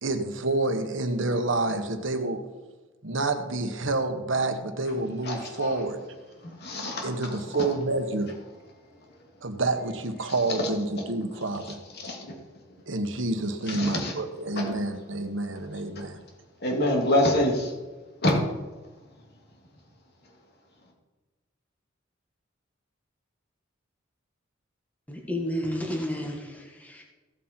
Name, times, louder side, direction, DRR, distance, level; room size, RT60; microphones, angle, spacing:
voice 1, 0.0-2.4 3.0-6.0 7.0-8.3 9.4-11.8 12.9-16.2, right 2 dB, 70° right, 7 dB, 1.3 m, -28 dB
voice 2, 5.2-5.8 6.4-7.7 10.6-10.7 11.9-12.3 13.7-14.1 14.5-14.7 16.6-17.7 18.2-18.4, left 1 dB, 55° left, 0 dB, 2.7 m, -26 dB
voice 3, 25.1-27.0, equal, 10° left, 0 dB, 1.6 m, -31 dB
15.5 x 7.6 x 4.5 m, 1.2 s
head